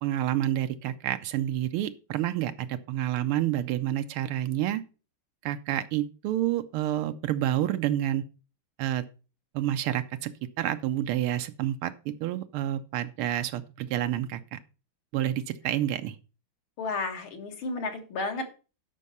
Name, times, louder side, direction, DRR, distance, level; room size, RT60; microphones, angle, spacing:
voice 1, 0.0-4.8 5.4-8.2 8.8-9.0 9.5-10.3 10.6-14.6 15.1-16.2, right 12 dB, 90° right, 8 dB, 1.6 m, -29 dB
voice 2, 16.8-18.5, left 3 dB, 70° left, 4 dB, 2.5 m, -32 dB
12.0 x 5.4 x 5.4 m, 0.34 s
omnidirectional pair, 2.3 m